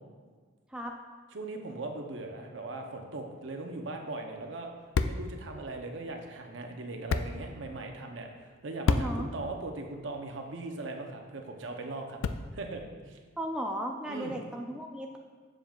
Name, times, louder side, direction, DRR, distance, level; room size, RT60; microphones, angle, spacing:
voice 1, 1.3-4.7 5.0-12.2 12.5-13.2 14.1-14.4, right 2 dB, 70° right, 3 dB, 0.7 m, -39 dB
sound 1, 3.7-12.8, left 4 dB, 85° left, 0.3 m, -36 dB
voice 2, 8.9-9.3 13.4-15.2, equal, 5° right, 1 dB, 0.3 m, -35 dB
7.5 x 7.0 x 2.4 m, 1.5 s
head